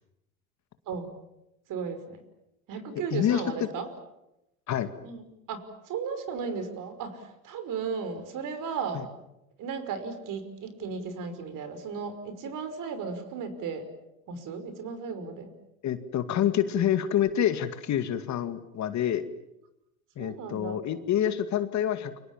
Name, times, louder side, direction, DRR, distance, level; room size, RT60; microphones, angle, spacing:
voice 1, 1.7-2.2 2.7-3.9 5.0-5.2 5.5-9.1 9.6-13.9 14.3-15.5 20.2-20.8, right 5 dB, 50° right, 10 dB, 5.6 m, -35 dB
voice 2, 3.1-3.4 4.7-4.9 8.9-9.1 15.8-19.2 20.2-22.2, left 10 dB, 40° left, 10 dB, 2.2 m, -27 dB
29.5 x 24.5 x 7.4 m, 0.89 s
hypercardioid pair, 90°, 41 cm